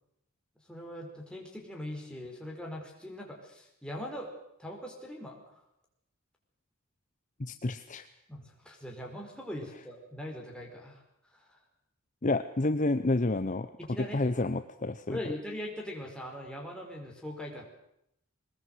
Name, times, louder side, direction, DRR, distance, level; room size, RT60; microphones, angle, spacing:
voice 1, 0.7-4.3 4.6-5.6 8.3-11.0 11.3-11.6 13.8-14.2 15.1-17.7, left 1 dB, 5° left, -1 dB, 4.9 m, -41 dB
voice 2, 7.4-8.1 12.2-13.7 14.1-15.2, left 2 dB, 35° left, 10 dB, 0.8 m, -29 dB
22.0 x 20.0 x 8.0 m, 0.79 s
head